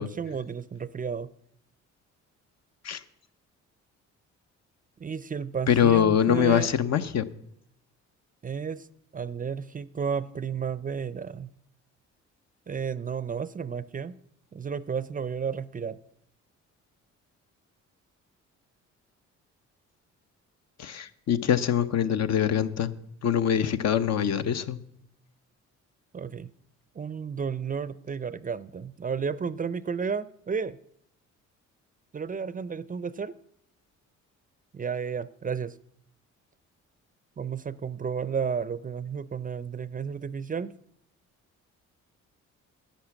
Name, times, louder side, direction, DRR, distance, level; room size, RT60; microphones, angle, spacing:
voice 1, 0.0-1.3 5.0-6.7 8.4-8.9 9.1-11.5 12.7-14.2 14.5-16.0 26.1-26.5 27.0-30.8 32.1-33.3 34.7-35.8 37.4-40.7, right 6 dB, 30° right, 0.5 m, -32 dB
voice 2, 5.7-7.3 20.8-22.9 23.2-24.8, left 9 dB, 60° left, 0.9 m, -24 dB
11.5 x 9.2 x 7.1 m
cardioid pair, 90°, 30 cm